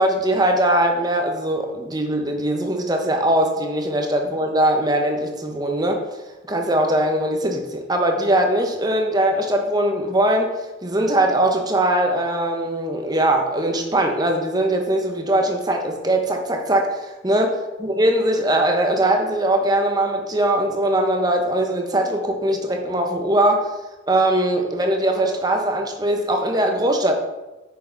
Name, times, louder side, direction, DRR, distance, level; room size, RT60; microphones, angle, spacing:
voice 1, 0.0-6.0 6.5-10.5 10.8-23.7 24.1-27.2, right 1 dB, 20° right, 3 dB, 1.1 m, -21 dB
9.3 x 6.5 x 4.0 m, 1.1 s
head